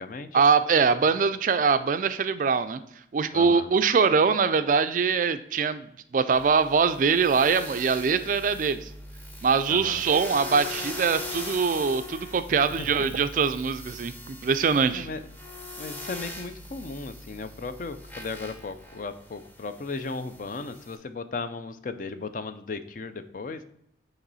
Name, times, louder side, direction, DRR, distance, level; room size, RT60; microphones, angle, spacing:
voice 1, 0.3-2.8 3.1-8.9 9.4-15.1, right 5 dB, 45° right, 12 dB, 0.3 m, -23 dB
voice 2, 3.3-3.7 9.7-10.0 12.8-12.9 14.9-15.2 15.8-23.6, left 3 dB, 45° left, 10 dB, 0.4 m, -36 dB
sound 1, 6.3-21.0, left 1 dB, 10° left, 0.7 m, -41 dB
8.8 x 3.1 x 4.0 m, 0.75 s
head